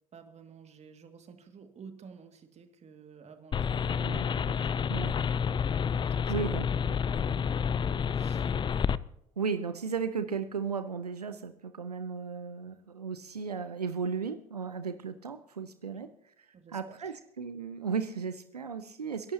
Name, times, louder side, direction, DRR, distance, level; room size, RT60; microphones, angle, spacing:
voice 1, 0.1-5.0 5.5-5.7 6.1-6.4 6.9-8.5 15.9-16.0 16.5-17.2, right 6 dB, 35° right, 6 dB, 2.1 m, -53 dB
sound 1, 3.5-9.0, left 7 dB, 25° left, 0.5 m, -29 dB
voice 2, 4.0-4.5 4.9-5.2 6.0-7.0 9.4-16.1 16.7-19.3, right 6 dB, 90° right, 10 dB, 0.7 m, -35 dB
29.5 x 11.5 x 2.9 m, 0.79 s
figure-of-eight pair, 65°, 19 cm